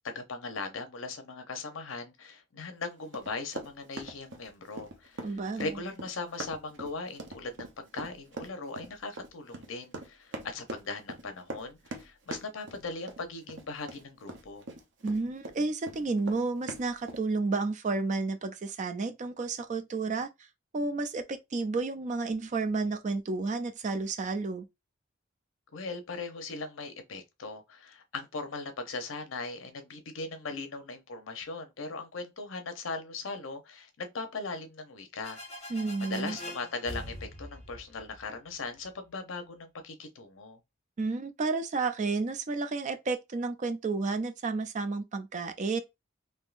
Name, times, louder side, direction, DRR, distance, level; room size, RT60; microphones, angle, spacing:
voice 1, 0.0-5.3 5.6-14.7 25.7-35.4 35.6-40.6, left 3 dB, 75° left, 0.7 m, -39 dB
Run, 3.1-15.6 15.8-17.2, right 2 dB, 65° right, 0.7 m, -42 dB
voice 2, 5.2-5.7 15.0-20.3 20.7-24.7 35.7-36.4 41.0-45.8, right 3 dB, 35° right, 0.4 m, -31 dB
sound 1, 35.2-38.8, left 1 dB, 35° left, 1.2 m, -44 dB
3.6 x 2.6 x 2.5 m
head